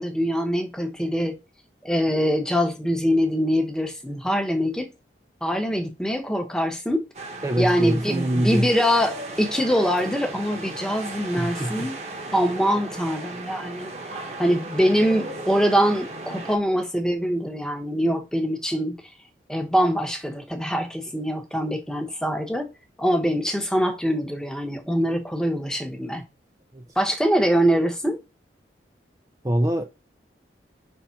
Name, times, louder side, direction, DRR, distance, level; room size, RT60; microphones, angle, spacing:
voice 1, 0.0-1.4 1.8-4.9 5.4-7.0 7.6-11.9 12.3-13.9 14.4-19.0 19.5-22.7 23.0-26.2 27.0-28.2, equal, 5° left, 0.9 m, -23 dB
sound 1, 7.1-16.6, right 2 dB, 35° right, 1.0 m, -36 dB
voice 2, 7.4-8.7 11.4-11.9 26.7-27.0 29.4-29.9, right 1 dB, 20° right, 0.5 m, -24 dB
5.6 x 3.5 x 5.7 m
head